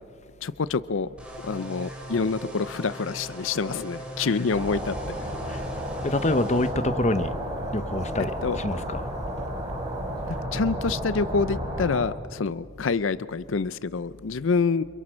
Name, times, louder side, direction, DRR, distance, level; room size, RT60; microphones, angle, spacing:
voice 1, 0.4-1.1 1.4-4.9 5.2-5.3 8.4-8.6 10.3-14.8, left 4 dB, 75° left, 0.5 m, -27 dB
sound 1, 1.2-6.7, equal, 5° right, 5.4 m, -39 dB
sound 2, 4.5-12.0, equal, 25° right, 6.2 m, -32 dB
voice 2, 6.0-7.3 7.7-9.1, left 1 dB, 35° left, 0.9 m, -26 dB
29.5 x 26.5 x 6.3 m
head